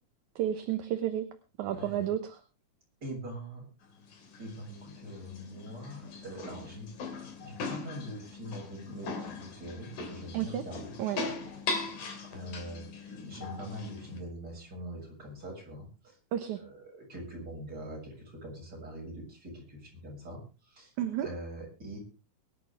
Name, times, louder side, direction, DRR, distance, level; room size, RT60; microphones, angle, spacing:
voice 1, 0.4-1.3 1.6-2.4 10.3-10.6 11.0-11.2 16.3-16.6 21.0-21.3, right 11 dB, 65° right, 7 dB, 2.3 m, -31 dB
voice 2, 1.7-2.1 3.0-3.7 4.4-11.0 12.3-16.2 16.5-20.9 21.2-22.0, equal, 25° right, -1 dB, 7.5 m, -43 dB
sound 1, 3.8-14.2, left 3 dB, 65° left, 4.3 m, -40 dB
23.0 x 11.0 x 3.6 m, 0.33 s
omnidirectional pair, 4.0 m